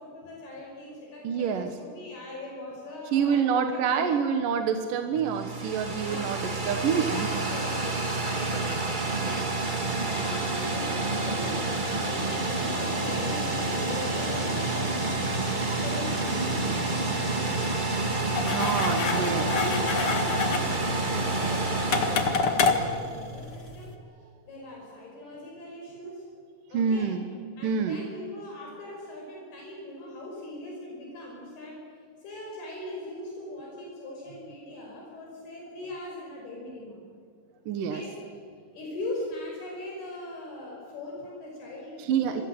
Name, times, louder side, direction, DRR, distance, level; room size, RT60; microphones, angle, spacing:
voice 1, 0.0-4.1 6.0-8.8 9.1-9.5 10.1-15.2 15.8-17.7 18.9-23.9 24.2-26.3 26.7-27.1 27.6-31.8 32.2-37.0 37.9-38.2 38.7-42.4, left 1 dB, 80° left, -2 dB, 7.3 m, -40 dB
voice 2, 1.2-1.7 3.1-7.3 11.1-11.3 18.5-19.5 26.7-27.3 27.6-28.0 37.7-38.0 42.0-42.4, right 7 dB, 65° right, 6 dB, 2.7 m, -27 dB
sound 1, 5.1-23.3, right 2 dB, 20° right, 1.2 m, -29 dB
sound 2, 18.3-23.9, left 5 dB, 45° left, 2.2 m, -28 dB
29.5 x 23.5 x 8.0 m, 2.1 s
omnidirectional pair, 4.5 m